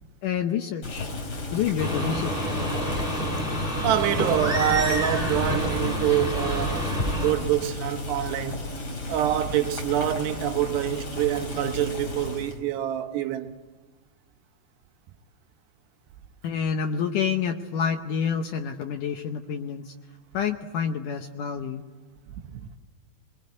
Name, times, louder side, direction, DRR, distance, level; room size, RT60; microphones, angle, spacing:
voice 1, 0.2-1.1 1.5-2.8 16.4-19.9 20.3-21.8, left 7 dB, 80° left, 1.8 m, -28 dB
Boiling, 0.8-12.6, left 2 dB, 30° left, 4.0 m, -34 dB
sound 1, 1.8-7.3, equal, 10° left, 5.1 m, -28 dB
voice 2, 3.8-8.7 9.1-13.5 22.5-22.8, right 12 dB, 80° right, 3.2 m, -26 dB
25.0 x 21.5 x 9.4 m
omnidirectional pair, 4.9 m